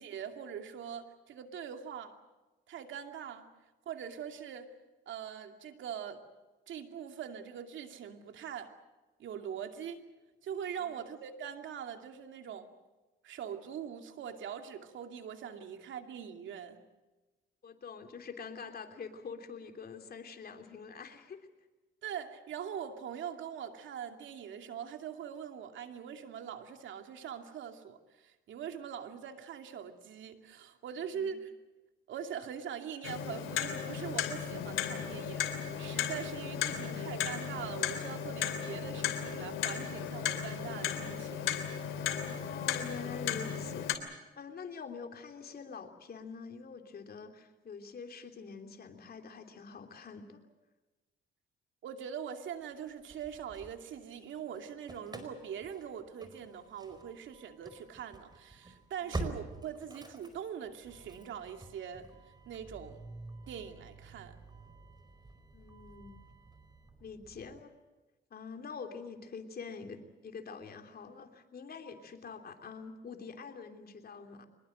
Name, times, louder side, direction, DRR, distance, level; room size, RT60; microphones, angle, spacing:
voice 1, 0.0-2.2 2.7-3.5 3.9-4.7 5.1-6.2 6.7-8.7 9.2-10.0 10.4-12.7 13.2-16.8 22.0-31.5 32.1-41.5 51.8-62.1 62.5-63.0 63.5-64.4, right 8 dB, 75° right, 6 dB, 2.6 m, -42 dB
voice 2, 17.6-21.5 31.1-31.4 42.2-43.9 44.3-50.4 59.0-59.2 65.5-66.2 67.0-67.7 68.3-74.5, left 5 dB, 50° left, 6 dB, 3.2 m, -45 dB
Clock, 33.0-44.0, left 8 dB, 85° left, 3.0 m, -35 dB
Engine starting / Slam, 52.9-54.3 54.5-67.6, right 2 dB, 20° right, 4.7 m, -47 dB
25.0 x 21.0 x 7.8 m, 1.2 s
cardioid pair, 90°, 20 cm